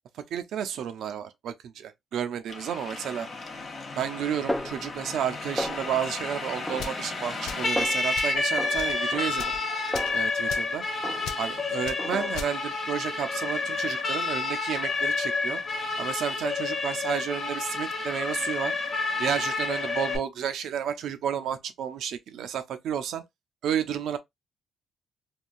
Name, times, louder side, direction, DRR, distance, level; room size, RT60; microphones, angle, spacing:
voice 1, 0.3-3.3 4.0-9.5 10.1-10.8 11.4-15.6 16.0-18.7 19.2-23.2 23.6-24.2, right 9 dB, 75° right, 0.5 m, -31 dB
Siren, 2.5-20.2, left 3 dB, 45° left, 0.9 m, -30 dB
Snare drum, 4.5-5.3 5.6-6.1 6.7-7.4 7.8-8.1 8.6-10.7 11.0-11.5 12.0-12.7, equal, ahead, 0.3 m, -35 dB
sound 1, 6.8-7.0 7.4-7.7 8.1-8.4 8.7-9.0 9.3-9.6 9.9-10.2 10.5-10.7 11.2-11.4 11.8-12.0 12.3-12.5, left 6 dB, 85° left, 0.6 m, -38 dB
3.6 x 2.3 x 2.5 m
cardioid pair, 90°, 0 cm